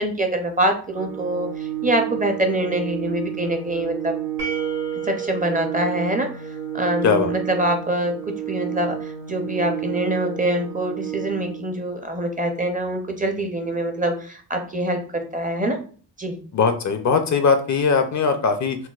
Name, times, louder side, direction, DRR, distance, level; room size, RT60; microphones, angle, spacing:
voice 1, 0.0-4.2 5.0-6.4 6.7-15.8 16.2-16.4, right 1 dB, 20° right, 5 dB, 0.5 m, -24 dB
Organ, 0.9-11.9, right 11 dB, 90° right, 0.8 m, -31 dB
sound 1, 4.4-7.2, right 6 dB, 70° right, 1.4 m, -33 dB
voice 2, 16.5-18.8, left 5 dB, 45° left, 7 dB, 0.5 m, -20 dB
3.9 x 2.1 x 2.3 m, 0.42 s
cardioid pair, 75°, 43 cm